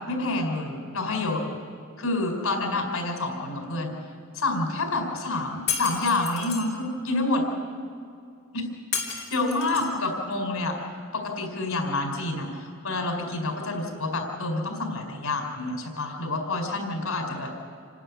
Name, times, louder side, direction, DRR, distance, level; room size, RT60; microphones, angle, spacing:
voice 1, 0.0-1.4 2.0-3.9 4.3-7.4 8.5-8.7 9.1-10.8 11.1-17.7, left 2 dB, 90° left, 2 dB, 4.6 m, -28 dB
Shatter, 5.7-6.7 8.9-10.0, left 7 dB, 50° left, 2.9 m, -31 dB
27.5 x 12.0 x 9.7 m, 2.4 s
head